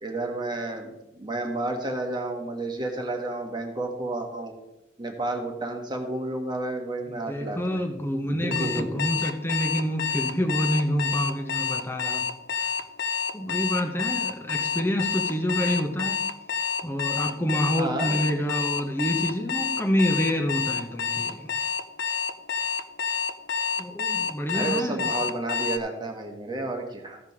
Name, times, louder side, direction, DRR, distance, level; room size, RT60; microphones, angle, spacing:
voice 1, 0.0-4.5 5.0-7.8 8.3-9.0 17.8-18.3 24.5-27.2, right 2 dB, 25° right, 2 dB, 1.5 m, -31 dB
voice 2, 7.1-12.2 12.5-12.7 13.3-16.2 16.8-21.5 23.8-25.2, equal, 10° left, 3 dB, 0.9 m, -27 dB
Alarm, 8.5-25.8, left 6 dB, 60° left, 0.6 m, -28 dB
15.0 x 5.1 x 4.9 m, 0.90 s
head